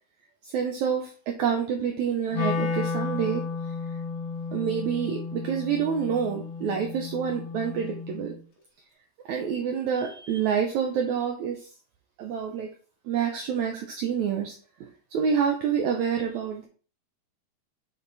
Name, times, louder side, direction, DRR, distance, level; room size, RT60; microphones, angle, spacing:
voice 1, 0.4-3.4 4.5-8.3 9.3-11.7 12.2-12.7 13.0-16.7, right 7 dB, 80° right, 2 dB, 1.6 m, -28 dB
Wind instrument woodwind instrument, 2.3-8.4, left 5 dB, 75° left, 1.1 m, -33 dB
8.6 x 3.7 x 4.1 m, 0.40 s
omnidirectional pair, 4.4 m